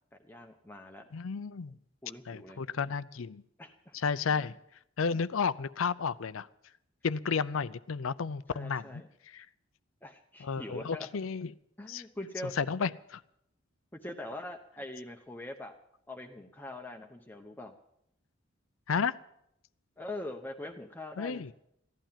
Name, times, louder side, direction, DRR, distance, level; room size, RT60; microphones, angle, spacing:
voice 1, 0.2-1.1 2.0-2.6 3.6-4.0 8.5-9.1 10.0-11.1 11.8-12.5 12.8-12.9 14.0-15.7 16.1-17.7 20.0-21.5, left 1 dB, 10° left, 4 dB, 0.8 m, -43 dB
voice 2, 1.1-1.8 2.3-3.4 3.9-4.5 5.0-6.5 7.0-9.0 9.3-9.5 10.4-11.5 11.9-12.0 12.6-12.9 18.9-19.2 21.2-21.5, left 5 dB, 85° left, 15 dB, 0.5 m, -32 dB
15.5 x 11.5 x 7.4 m, 0.77 s
head